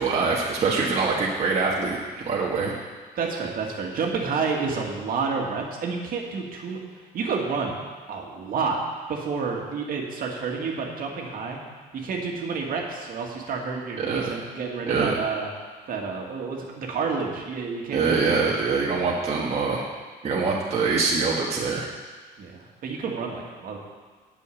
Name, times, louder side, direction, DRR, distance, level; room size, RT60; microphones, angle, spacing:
voice 1, 0.0-2.7 14.0-14.3 14.9-15.2 17.9-19.9 20.2-21.9, right 4 dB, 40° right, -4 dB, 1.6 m, -24 dB
voice 2, 3.2-6.8 7.1-7.8 8.1-8.8 9.1-11.6 11.9-15.5 15.9-18.6 22.4-23.8, right 5 dB, 55° right, 0 dB, 2.0 m, -29 dB
8.4 x 7.0 x 8.5 m, 1.4 s
cardioid pair, 110°, 17 cm